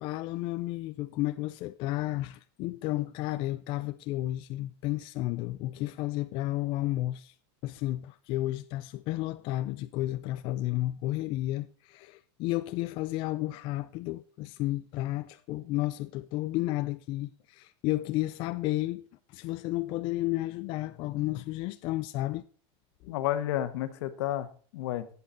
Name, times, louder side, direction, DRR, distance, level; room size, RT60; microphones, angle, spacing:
voice 1, 0.0-7.3 7.6-22.4 23.0-23.1, left 16 dB, 35° left, 0.4 m, -32 dB
voice 2, 23.1-25.1, left 12 dB, 70° left, 1.2 m, -31 dB
11.5 x 8.5 x 3.9 m
supercardioid pair, 165°, 14 cm